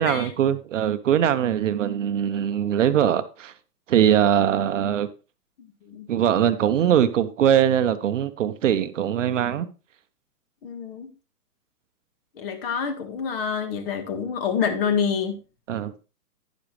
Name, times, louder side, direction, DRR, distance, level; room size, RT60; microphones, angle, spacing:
voice 1, 0.0-3.5 3.9-5.1 6.1-9.7 15.7-15.9, right 9 dB, 50° right, 0.9 m, -21 dB
voice 2, 5.6-6.1 10.6-11.1 12.4-15.4, left 6 dB, 35° left, 1.8 m, -27 dB
10.5 x 10.5 x 3.2 m
hypercardioid pair, 145°, 48 cm